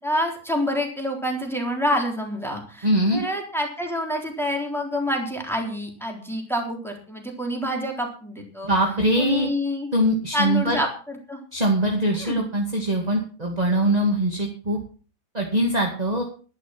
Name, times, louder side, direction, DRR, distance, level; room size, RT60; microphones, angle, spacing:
voice 1, 0.0-8.7 9.2-9.9 10.3-11.4 12.1-12.5, equal, ahead, 0 dB, 3.5 m, -27 dB
voice 2, 2.8-3.2 8.6-9.5 9.9-10.8 11.5-14.8 15.3-16.2, right 1 dB, 15° right, 1 dB, 1.9 m, -22 dB
12.0 x 11.5 x 6.0 m, 0.39 s
omnidirectional pair, 3.4 m